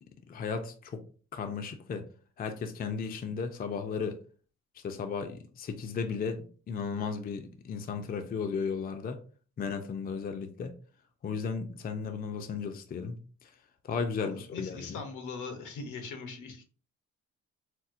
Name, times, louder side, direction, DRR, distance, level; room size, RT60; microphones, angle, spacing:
voice 1, 0.3-1.0 1.3-2.0 2.4-4.2 4.8-9.2 9.6-10.7 11.2-13.5 13.8-15.0, left 5 dB, 30° left, 0.4 m, -35 dB
voice 2, 14.2-16.6, left 4 dB, 75° left, 0.8 m, -41 dB
4.2 x 2.0 x 2.5 m
cardioid pair, 90°, 30 cm